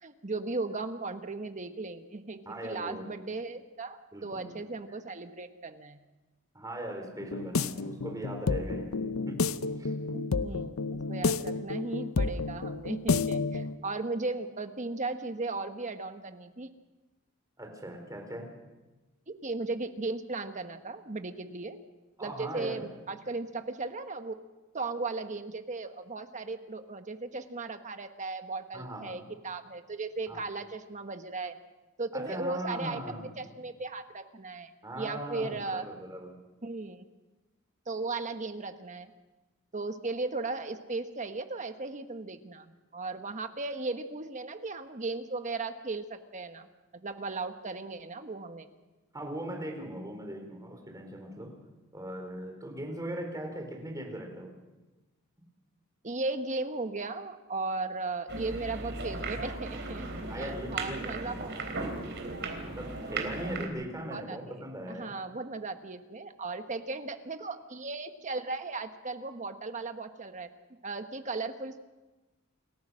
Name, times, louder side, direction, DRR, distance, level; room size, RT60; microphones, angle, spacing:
voice 1, 0.0-6.0 10.1-16.7 19.3-21.8 22.2-24.4 24.7-31.5 32.0-34.7 35.0-35.9 36.6-37.1 37.9-39.1 39.7-46.7 46.9-48.7 56.0-60.1 60.3-61.5 64.1-64.6 64.9-70.5 70.8-71.8, right 3 dB, 35° right, 8 dB, 1.2 m, -36 dB
voice 2, 2.5-3.1 4.1-4.6 6.5-8.9 9.3-9.4 9.8-9.9 17.6-18.5 22.2-22.8 28.7-29.2 30.3-30.4 32.1-33.3 34.8-36.3 49.1-51.6 51.9-54.5 55.4-55.5 60.3-61.4 62.6-65.2, right 1 dB, 15° right, 3 dB, 4.1 m, -39 dB
sound 1, 7.2-13.7, left 4 dB, 90° left, 0.7 m, -30 dB
sound 2, 58.3-63.7, right 3 dB, 60° right, 3.6 m, -36 dB
28.5 x 14.5 x 6.4 m, 1.1 s
head